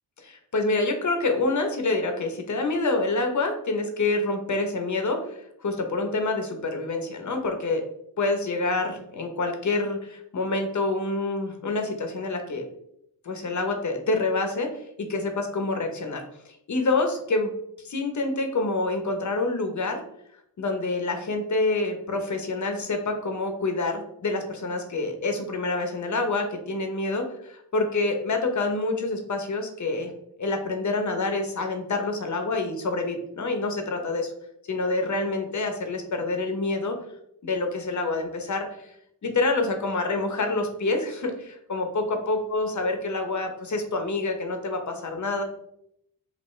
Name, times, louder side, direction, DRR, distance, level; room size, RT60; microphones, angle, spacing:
voice 1, 0.2-7.8 8.2-12.6 13.2-17.5 17.8-20.0 20.6-27.3 27.7-30.1 30.4-34.3 34.7-37.0 37.4-38.9 39.2-45.4, left 2 dB, 50° left, 5 dB, 0.8 m, -27 dB
5.5 x 2.6 x 3.1 m, 0.75 s
wide cardioid pair, 120°, 38 cm